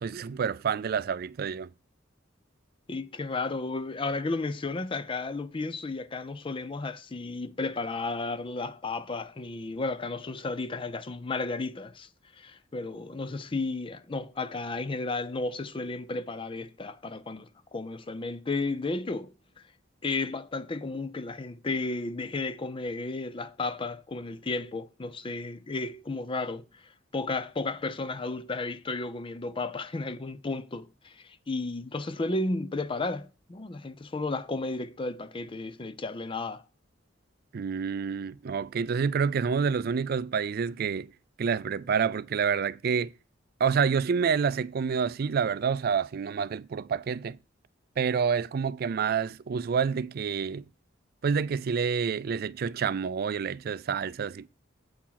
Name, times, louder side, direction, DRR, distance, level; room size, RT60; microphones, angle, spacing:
voice 1, 0.0-1.7 37.5-41.1 41.4-43.1 43.6-47.4 48.0-50.6 51.2-54.5, right 6 dB, 50° right, 0.4 m, -28 dB
voice 2, 2.9-12.1 12.4-19.3 20.0-26.6 27.1-36.6, left 3 dB, 25° left, 0.5 m, -33 dB
8.4 x 4.6 x 5.7 m
head